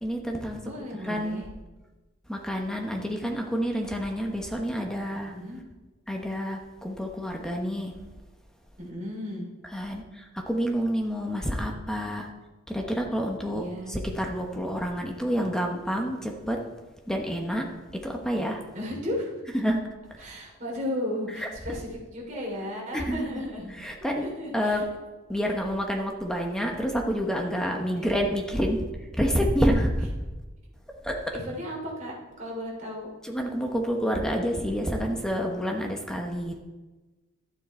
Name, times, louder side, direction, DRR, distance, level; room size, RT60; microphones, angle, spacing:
voice 1, 0.0-0.6 0.9-1.4 2.3-5.3 6.1-7.9 9.7-12.3 12.7-16.6 17.1-17.6 18.0-18.6 19.5-19.8 21.3-21.5 22.9-24.2 24.5-24.9 25.3-28.9 29.1-30.1 31.0-31.2 33.2-36.6, equal, 5° left, 1 dB, 1.1 m, -28 dB
voice 2, 0.6-1.5 5.3-5.6 8.8-9.5 13.5-13.9 18.7-19.4 20.2-23.8 24.1-24.8 27.7-28.2 31.3-33.1, left 1 dB, 40° right, -2 dB, 3.5 m, -35 dB
12.0 x 9.4 x 4.4 m, 1.2 s
head